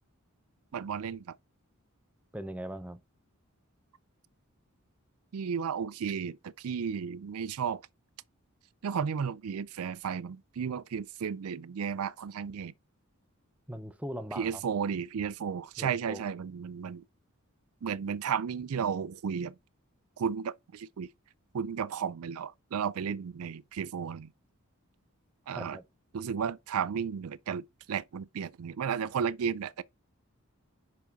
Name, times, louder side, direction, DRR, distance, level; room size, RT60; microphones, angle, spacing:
voice 1, 0.7-1.3 5.3-7.8 8.8-12.7 14.4-17.0 17.8-19.6 20.2-21.1 21.5-24.3 25.5-25.8 26.1-29.8, right 7 dB, 80° right, 0.4 m, -33 dB
voice 2, 2.3-3.0 13.7-14.6 15.8-16.3 25.5-25.8, equal, 5° right, 0.6 m, -40 dB
5.3 x 4.8 x 4.7 m
head